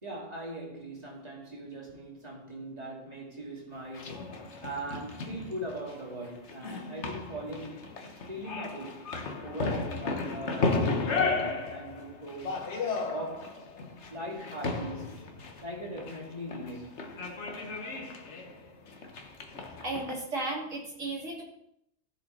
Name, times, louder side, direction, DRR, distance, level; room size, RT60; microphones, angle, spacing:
voice 1, 0.0-4.3 4.6-7.8 8.3-9.1 9.4-12.7 13.1-13.6 14.1-15.3 15.6-17.0, right 1 dB, 30° right, 2.6 m, -40 dB
sound 1, 3.7-20.2, left 4 dB, 65° left, 1.5 m, -34 dB
voice 2, 19.8-21.4, right 2 dB, 90° right, 3.5 m, -34 dB
14.0 x 6.5 x 4.3 m
omnidirectional pair, 1.3 m